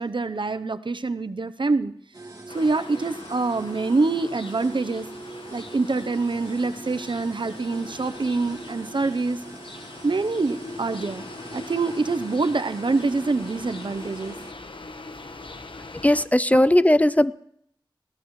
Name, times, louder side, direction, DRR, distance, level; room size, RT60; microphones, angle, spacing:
voice 1, 0.0-1.9 2.5-5.1 5.5-9.4 10.0-11.2 11.5-14.4 16.5-16.7, right 3 dB, 65° right, 11 dB, 0.7 m, -25 dB
sound 1, 2.1-14.5, right 2 dB, 35° right, 2.2 m, -42 dB
sound 2, 2.5-16.3, left 3 dB, 75° left, 1.1 m, -42 dB
voice 2, 16.0-17.3, left 1 dB, 15° left, 16 dB, 0.5 m, -18 dB
21.0 x 16.5 x 3.2 m, 0.70 s
wide cardioid pair, 50°, 9 cm